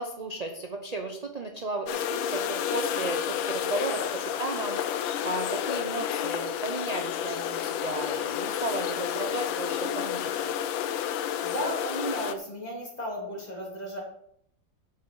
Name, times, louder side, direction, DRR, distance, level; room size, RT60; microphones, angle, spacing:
voice 1, 0.0-2.0 2.3-4.1 4.4-10.5, right 2 dB, 35° right, 3 dB, 0.6 m, -34 dB
sound 1, 1.9-12.4, left 10 dB, 90° left, 1.5 m, -30 dB
voice 2, 11.1-14.0, equal, 20° left, -3 dB, 3.4 m, -35 dB
8.7 x 6.7 x 7.0 m, 0.72 s
omnidirectional pair, 2.0 m